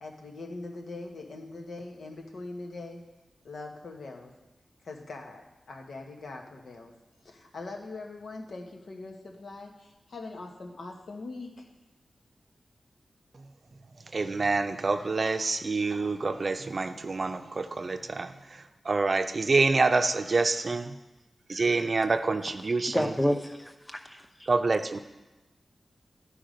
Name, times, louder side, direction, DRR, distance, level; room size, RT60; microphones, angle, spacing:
voice 1, 0.0-3.0 3.4-4.3 4.8-6.9 7.2-11.7, left 3 dB, 85° left, 2 dB, 1.2 m, -42 dB
voice 2, 14.1-20.9 21.5-23.1 24.5-25.0, right 3 dB, 50° right, 8 dB, 0.5 m, -27 dB
voice 3, 22.9-24.5, equal, 10° left, 4 dB, 0.8 m, -29 dB
12.0 x 4.9 x 5.1 m, 1.0 s
wide cardioid pair, 105°, 0 cm